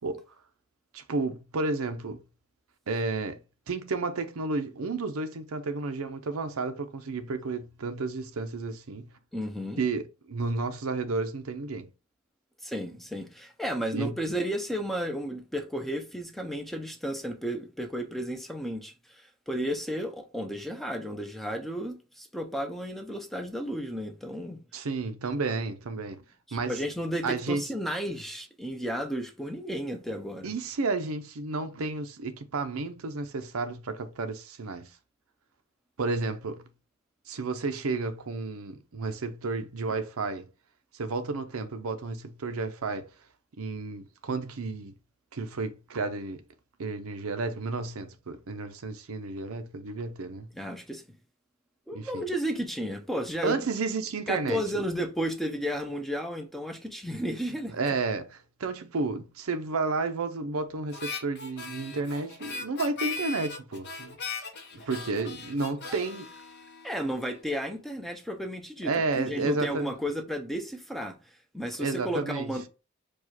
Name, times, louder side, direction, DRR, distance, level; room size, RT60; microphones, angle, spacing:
voice 1, 0.9-2.2 2.9-3.4 3.7-9.1 9.8-10.0 10.3-11.9 13.9-14.1 24.7-26.2 26.5-26.8 27.2-27.6 30.4-34.9 36.0-36.6 37.3-40.5 40.9-43.1 43.6-44.9 45.3-46.4 46.8-50.5 51.9-52.3 53.4-54.8 57.7-64.2 64.9-66.3 68.8-69.9 71.8-72.5, right 3 dB, 80° right, 0.6 m, -32 dB
voice 2, 9.3-9.8 12.6-24.6 26.5-30.5 50.5-51.0 51.9-53.7 54.3-57.7 66.8-72.7, equal, ahead, 0.6 m, -33 dB
Harmonica, 60.9-67.4, left 4 dB, 55° left, 0.9 m, -39 dB
4.8 x 2.4 x 4.2 m
head